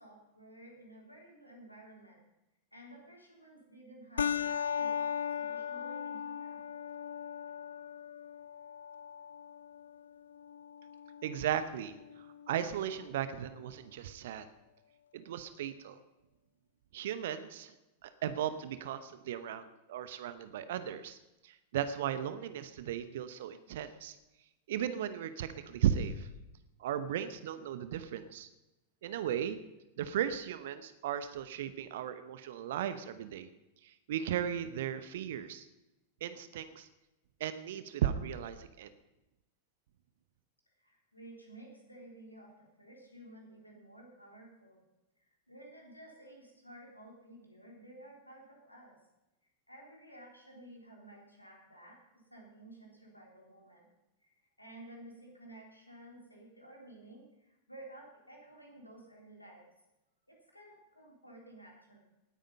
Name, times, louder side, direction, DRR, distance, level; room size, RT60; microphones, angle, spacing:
voice 1, 0.0-2.2 2.7-6.7 40.8-44.8 45.2-49.0 49.7-53.9 54.2-59.7 60.3-62.0, right 1 dB, 85° left, 0 dB, 3.7 m, -54 dB
sound 1, 4.2-13.2, left 7 dB, 70° left, 0.6 m, -39 dB
voice 2, 11.2-11.9 12.5-14.4 15.1-16.0 16.9-17.7 18.0-21.2 21.4-24.2 24.7-26.3 26.8-28.5 29.0-29.6 30.0-33.5 33.8-35.6 36.2-36.9 37.4-38.9, right 10 dB, 55° right, 12 dB, 0.9 m, -36 dB
19.0 x 9.1 x 5.4 m, 0.99 s
figure-of-eight pair, 90°, 0 cm